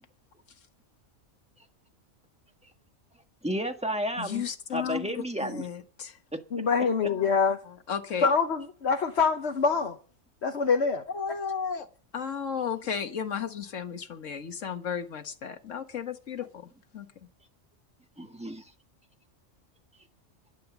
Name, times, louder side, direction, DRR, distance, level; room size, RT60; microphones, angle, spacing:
voice 1, 3.4-4.4 4.7-5.7 6.3-6.4 18.2-18.7, equal, 5° right, 1.5 m, -32 dB
voice 2, 4.2-6.2 6.7-7.3 7.7-8.3 11.1-11.9 12.1-17.1, left 7 dB, 80° left, 1.7 m, -34 dB
voice 3, 6.5-7.6 8.2-10.0 10.4-11.0, left 5 dB, 60° left, 1.3 m, -25 dB
11.5 x 11.0 x 7.3 m
omnidirectional pair, 1.3 m